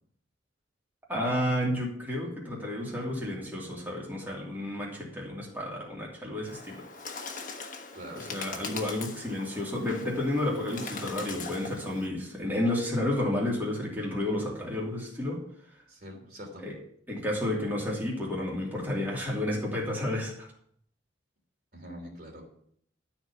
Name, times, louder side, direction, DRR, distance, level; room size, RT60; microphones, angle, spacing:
voice 1, 1.1-6.9 8.1-15.4 16.6-16.7 17.1-20.5, left 1 dB, 10° right, -4 dB, 2.7 m, -31 dB
Bird, 6.5-12.1, left 4 dB, 45° left, 1.2 m, -41 dB
voice 2, 7.9-8.2 8.6-8.7 15.9-16.6 21.7-22.4, equal, 50° right, 0 dB, 3.2 m, -44 dB
12.5 x 4.5 x 7.0 m, 0.66 s
head